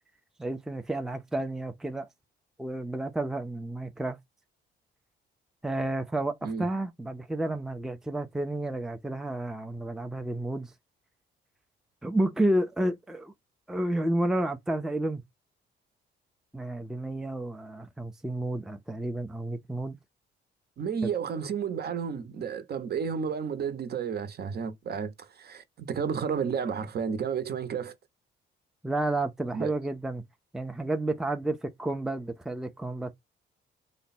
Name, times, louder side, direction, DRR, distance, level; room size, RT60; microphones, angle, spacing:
voice 1, 0.4-2.1 2.6-4.2 5.6-10.7 12.0-13.3 13.7-15.2 16.5-20.0 21.0-21.1 28.8-30.2 30.5-33.1, right 1 dB, ahead, 0.5 m, -31 dB
voice 2, 20.8-27.9 29.5-29.7, right 6 dB, 55° right, 0.9 m, -32 dB
3.3 x 2.2 x 4.1 m
cardioid pair, 90°, 20 cm